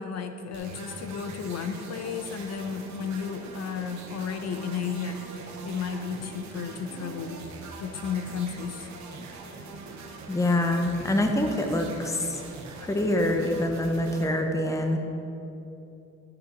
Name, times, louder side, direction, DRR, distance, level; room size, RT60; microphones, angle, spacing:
voice 1, 0.0-7.4 7.8-8.9, left 6 dB, 60° left, 7 dB, 0.8 m, -33 dB
sound 1, 0.5-14.2, right 3 dB, 65° right, 1.3 m, -42 dB
voice 2, 10.3-12.4 12.8-15.0, left 1 dB, 10° left, 4 dB, 0.8 m, -25 dB
12.0 x 5.7 x 4.3 m, 2.9 s
cardioid pair, 90°, 30 cm